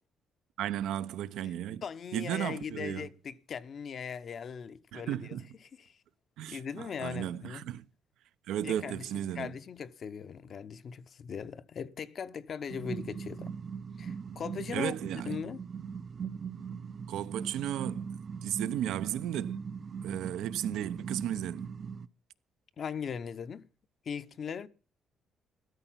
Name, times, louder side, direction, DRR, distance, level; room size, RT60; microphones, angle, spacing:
voice 1, 0.6-1.8 2.1-3.1 4.9-5.5 6.4-7.8 8.5-9.6 14.7-15.3 17.1-19.6 20.0-21.7, right 11 dB, 85° right, 0.8 m, -35 dB
voice 2, 1.8-5.4 5.9-6.0 6.5-7.6 8.6-9.1 9.3-13.5 14.0-15.0 15.3-15.6 22.8-23.7 24.0-24.7, left 7 dB, 55° left, 0.9 m, -39 dB
sound 1, 12.7-22.1, right 6 dB, 50° right, 0.7 m, -40 dB
14.0 x 13.0 x 5.8 m
cardioid pair, 90°, 0 cm